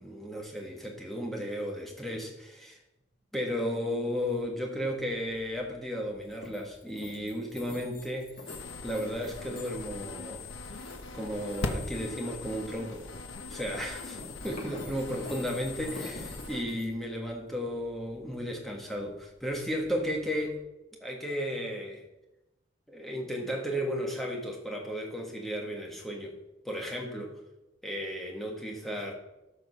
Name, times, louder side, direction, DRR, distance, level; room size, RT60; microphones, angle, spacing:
voice 1, 0.0-2.8 3.3-8.4 8.8-10.5 11.1-13.1 13.5-14.2 14.4-20.6 21.0-22.0 22.9-26.4 26.6-27.3 27.8-29.1, equal, ahead, 0 dB, 1.7 m, -34 dB
sound 1, 4.2-20.6, left 2 dB, 50° left, 2.4 m, -49 dB
sound 2, 8.5-16.6, left 2 dB, 80° left, 1.3 m, -40 dB
13.0 x 5.3 x 6.6 m, 0.96 s
head